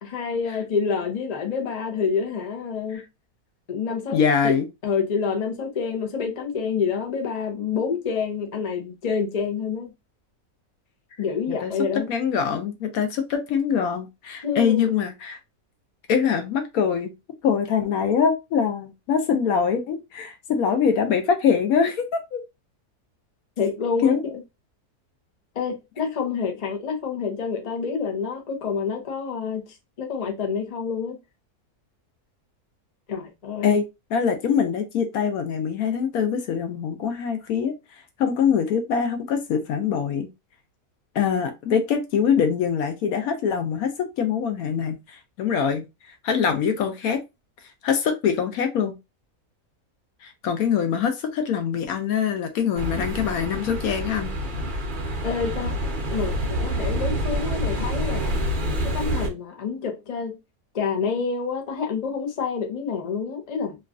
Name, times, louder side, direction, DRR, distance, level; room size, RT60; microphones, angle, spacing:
voice 1, 0.0-3.0 3.7-4.2 4.4-4.5 4.8-9.9 11.2-12.1 14.4-14.8 23.6-24.3 25.6-29.6 30.0-31.2 33.1-33.8 55.2-55.7 56.1-58.4 58.8-60.4 60.7-63.8, left 6 dB, 45° left, 0.5 m, -27 dB
voice 2, 4.1-4.7 11.5-11.7 12.1-15.4 16.1-17.1 17.4-22.4 24.0-24.2 33.6-33.8 34.1-37.7 38.2-40.3 41.1-45.9 46.2-47.2 47.8-48.9 50.2-54.3, left 7 dB, 75° left, 1.0 m, -23 dB
sound 1, 52.8-59.3, equal, 45° right, 0.7 m, -27 dB
3.0 x 2.4 x 2.4 m
omnidirectional pair, 1.6 m